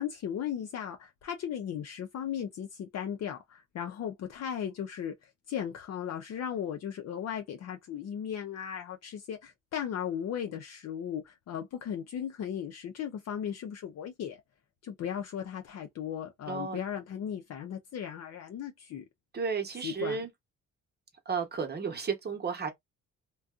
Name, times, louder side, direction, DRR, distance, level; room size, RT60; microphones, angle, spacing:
voice 1, 0.0-5.1 5.5-14.4 14.8-19.0 19.8-20.2, left 9 dB, 55° left, 0.6 m, -36 dB
voice 2, 16.5-16.8 19.3-20.3 21.3-22.7, right 5 dB, 35° right, 0.9 m, -33 dB
2.5 x 2.3 x 2.4 m
cardioid pair, 90°, 30 cm